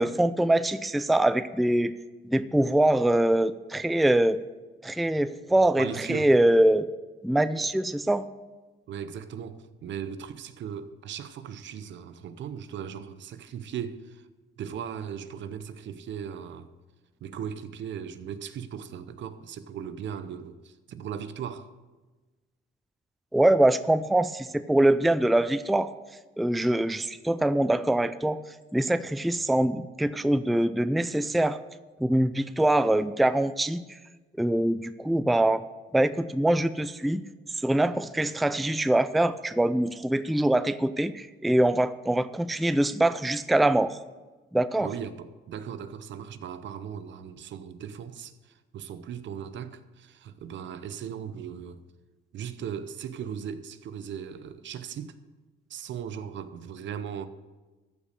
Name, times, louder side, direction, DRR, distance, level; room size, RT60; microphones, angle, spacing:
voice 1, 0.0-1.9 2.2-4.4 4.8-6.9 7.2-8.2 23.3-25.9 26.4-28.4 28.7-31.6 32.0-33.8 34.4-35.6 35.9-37.2 37.6-44.0 44.5-44.9, right 1 dB, ahead, 0.4 m, -23 dB
voice 2, 5.7-6.3 8.9-14.3 14.6-16.7 17.2-21.7 44.8-51.8 52.3-55.2 55.7-57.3, right 8 dB, 70° right, 0.8 m, -38 dB
14.0 x 5.2 x 6.6 m
cardioid pair, 90°, 20 cm